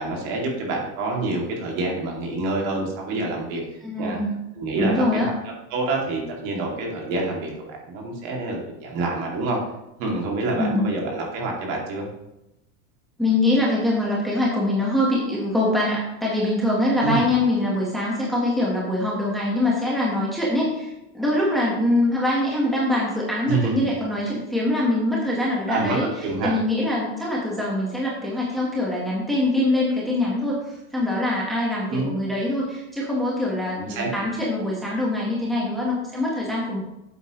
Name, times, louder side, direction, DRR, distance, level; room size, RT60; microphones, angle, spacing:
voice 1, 0.0-3.6 4.0-4.2 4.6-5.3 5.7-9.6 10.0-12.1 17.0-17.3 23.5-23.8 25.7-26.0 26.2-26.5 31.9-32.1 33.8-34.1, right 2 dB, 50° right, -1 dB, 2.7 m, -27 dB
voice 2, 3.8-4.4 4.8-5.3 10.5-10.9 13.2-36.8, left 1 dB, ahead, -5 dB, 1.4 m, -23 dB
10.0 x 8.1 x 3.2 m, 0.89 s
supercardioid pair, 160°, 41 cm